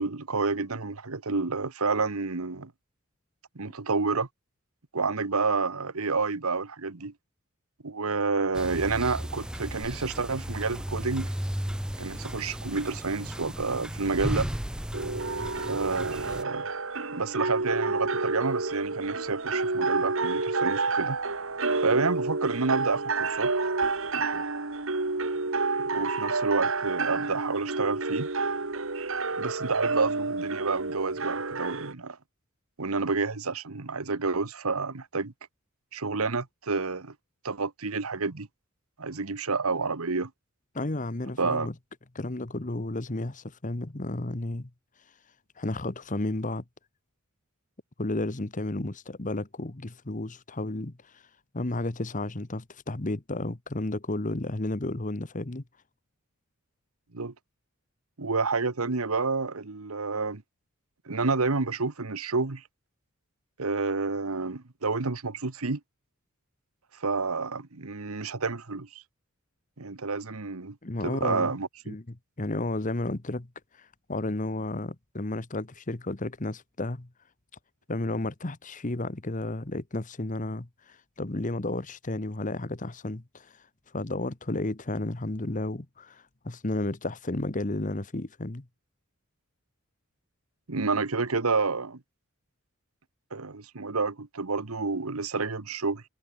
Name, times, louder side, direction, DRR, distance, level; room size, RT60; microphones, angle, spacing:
voice 1, 0.0-2.7 3.5-4.3 4.9-7.1 7.8-11.3 12.0-14.5 15.7-16.6 17.1-21.2 21.8-23.5 24.1-24.4 25.9-28.3 29.4-32.2 32.8-35.3 35.9-37.1 37.4-38.5 39.0-40.3 41.4-41.7 57.1-57.3 58.2-60.4 61.1-62.6 63.6-65.8 67.0-69.0 69.8-70.8 71.0-72.0 90.7-92.0 93.3-96.0, right 4 dB, 85° right, 1.3 m, -29 dB
sound 1, 8.5-16.4, equal, 5° right, 0.5 m, -35 dB
sound 2, 14.9-31.9, right 3 dB, 65° right, 1.9 m, -29 dB
voice 2, 40.7-41.7 42.1-44.7 45.6-46.6 48.0-50.9 51.5-55.6 70.8-71.5 71.9-73.5 73.8-77.1 77.9-83.5 83.9-88.7, left 2 dB, 35° left, 1.2 m, -32 dB
head